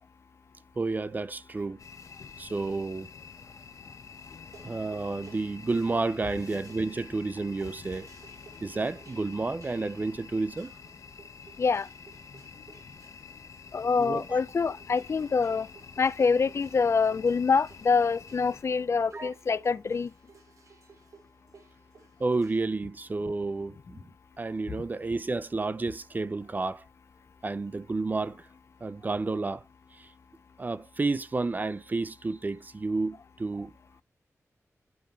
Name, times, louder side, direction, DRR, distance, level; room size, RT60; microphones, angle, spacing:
voice 1, 0.8-1.8 2.4-3.1 4.6-8.1 8.6-10.7 14.0-14.2 19.1-19.3 22.2-24.1 24.4-26.8 27.4-28.5 28.8-29.6 29.9-30.1 30.6-33.7, right 3 dB, 30° right, 0.5 m, -31 dB
sound 1, 1.8-18.6, left 6 dB, 80° left, 1.2 m, -49 dB
sound 2, 3.6-22.7, right 4 dB, 75° right, 2.6 m, -57 dB
voice 2, 4.3-4.8 8.5-8.6 11.6-11.9 13.7-15.7 16.0-20.1, left 5 dB, 55° left, 0.4 m, -26 dB
9.4 x 3.6 x 4.0 m
wide cardioid pair, 110°, 6 cm